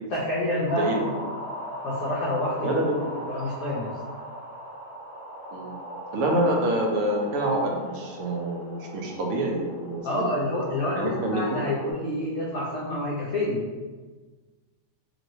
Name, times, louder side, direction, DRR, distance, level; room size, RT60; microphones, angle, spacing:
voice 1, 0.1-1.1 1.8-2.8 3.3-3.9 10.0-13.6, left 1 dB, 65° left, -6 dB, 0.8 m, -28 dB
sound 1, 0.7-11.9, equal, 40° right, 1.7 m, -39 dB
voice 2, 0.7-1.1 2.6-3.1 5.5-5.8 6.1-10.3 10.9-11.6, right 1 dB, 65° right, 0 dB, 0.7 m, -27 dB
3.0 x 2.9 x 2.6 m, 1.3 s
omnidirectional pair, 1.7 m